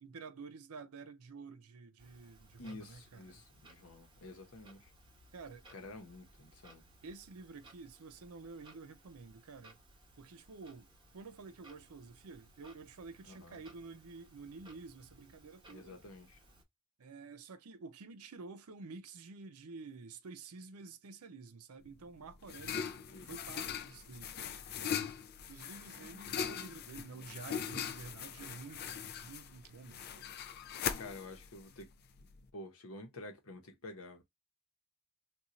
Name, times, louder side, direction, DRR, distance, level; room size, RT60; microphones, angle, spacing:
voice 1, 0.0-3.4 5.3-5.7 7.0-9.8 10.2-10.9 11.1-16.0 17.0-22.9 23.2-25.2 25.5-30.3, right 4 dB, 90° right, 0.6 m, -50 dB
Clock, 2.0-16.6, right 1 dB, 20° right, 0.9 m, -62 dB
voice 2, 2.6-4.9 5.7-6.8 13.3-13.6 15.7-16.4 22.7-23.4 31.0-31.9 32.5-34.2, left 2 dB, 75° left, 0.9 m, -50 dB
sound 1, 21.9-32.4, left 8 dB, 45° left, 0.4 m, -41 dB
2.5 x 2.3 x 4.0 m
head